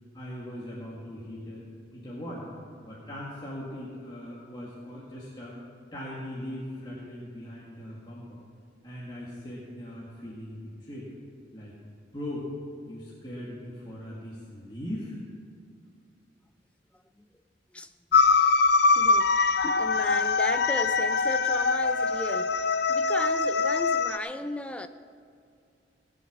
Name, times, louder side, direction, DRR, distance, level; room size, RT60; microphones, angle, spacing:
voice 1, 0.1-1.7 1.9-2.5 2.8-5.5 5.9-8.4 8.8-11.1 11.5-11.7 12.1-12.5 12.9-15.1, left 1 dB, 25° left, 2.0 m, -39 dB
sound 1, 18.1-24.2, left 4 dB, 60° left, 0.5 m, -23 dB
voice 2, 19.0-22.6 22.9-24.9, left 1 dB, 5° left, 0.5 m, -35 dB
18.0 x 8.0 x 6.0 m
head